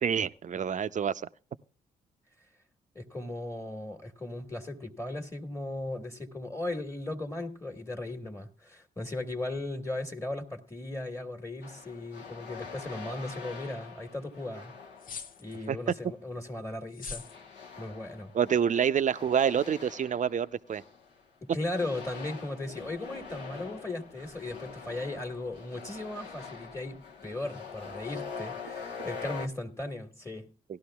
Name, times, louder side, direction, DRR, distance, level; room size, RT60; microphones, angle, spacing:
voice 1, 0.0-1.2 15.7-15.8 18.3-20.8, right 8 dB, 40° right, 0.5 m, -27 dB
voice 2, 2.9-14.8 15.4-17.2 17.8-18.3 21.4-30.5, left 2 dB, 15° left, 1.5 m, -37 dB
sound 1, 11.6-15.8 17.1-21.3 21.7-29.5, left 5 dB, 70° left, 1.0 m, -44 dB
sound 2, 15.0-15.6 16.9-17.4, left 5 dB, 50° left, 0.6 m, -41 dB
17.0 x 12.0 x 2.3 m
hypercardioid pair, 45°, 19 cm